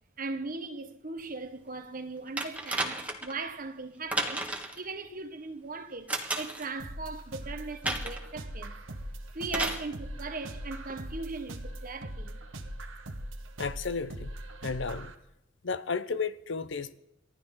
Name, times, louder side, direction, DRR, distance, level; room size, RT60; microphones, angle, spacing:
voice 1, 0.2-4.4 4.7-8.8 9.3-12.4, right 3 dB, 45° right, 1.2 m, -39 dB
sound 1, 2.4-3.3 4.1-4.8 6.1-6.7 7.8-8.3 9.5-9.9 10.9-11.0, right 2 dB, 5° right, 1.7 m, -32 dB
sound 2, 6.8-15.1, right 1 dB, 80° right, 1.5 m, -41 dB
voice 2, 13.6-14.3 14.6-15.1 15.6-16.9, left 5 dB, 65° left, 0.8 m, -33 dB
29.5 x 12.5 x 3.8 m
head